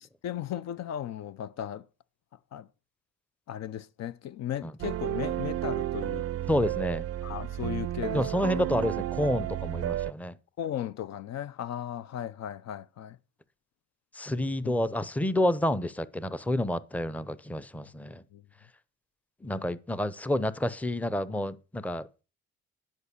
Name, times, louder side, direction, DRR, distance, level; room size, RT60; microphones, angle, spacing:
voice 1, 0.0-1.9 2.5-2.7 3.5-6.3 7.2-8.2 8.5-8.6 10.6-13.2 14.6-14.7 18.3-18.4, left 10 dB, 60° left, 0.6 m, -36 dB
sound 1, 4.8-10.1, right 13 dB, 50° right, 0.4 m, -32 dB
voice 2, 6.5-7.0 8.1-10.4 14.1-18.2 19.4-22.1, left 1 dB, 5° left, 0.6 m, -29 dB
11.0 x 5.1 x 6.7 m
cardioid pair, 90°, 30 cm